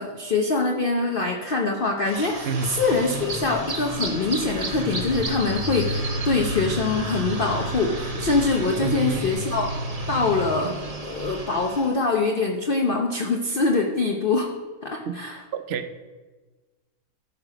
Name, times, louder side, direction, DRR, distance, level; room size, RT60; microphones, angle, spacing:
voice 1, 0.0-9.7 10.1-10.7 11.0-14.5 14.8-15.4, left 3 dB, 40° left, 1 dB, 0.8 m, -24 dB
sound 1, 2.0-11.9, right 1 dB, 25° right, 1.0 m, -31 dB
voice 2, 8.8-9.2 10.6-10.8 15.0-15.2 15.5-16.0, right 7 dB, 75° right, 9 dB, 0.5 m, -28 dB
14.0 x 6.0 x 5.0 m, 1.3 s
omnidirectional pair, 1.9 m